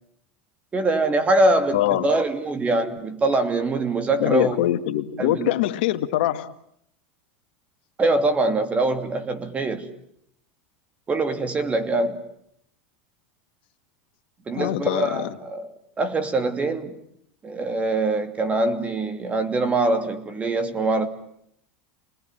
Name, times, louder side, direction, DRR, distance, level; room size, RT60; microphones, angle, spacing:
voice 1, 0.7-4.6 5.2-5.5 8.0-9.9 11.1-12.2 14.5-15.7 16.0-17.0 17.4-21.1, right 2 dB, 25° right, 2.7 m, -23 dB
voice 2, 1.7-2.1 4.2-6.5 14.5-15.4, left 13 dB, 75° left, 1.9 m, -23 dB
28.5 x 21.0 x 9.2 m
supercardioid pair, 120°, 6 cm